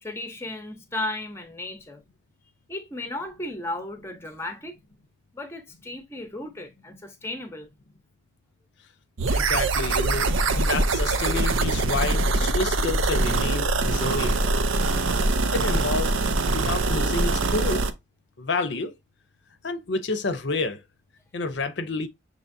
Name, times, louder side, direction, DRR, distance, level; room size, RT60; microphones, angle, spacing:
voice 1, 0.0-2.0 2.7-4.7 5.3-7.7 14.8-15.0, left 2 dB, 10° left, 0.7 m, -35 dB
sound 1, 9.2-17.9, right 2 dB, 80° right, 0.6 m, -23 dB
voice 2, 9.3-14.4 15.5-16.2 16.5-17.9 18.4-19.0 19.6-20.8 21.3-22.1, left 3 dB, 60° left, 0.6 m, -29 dB
6.9 x 2.9 x 2.6 m
head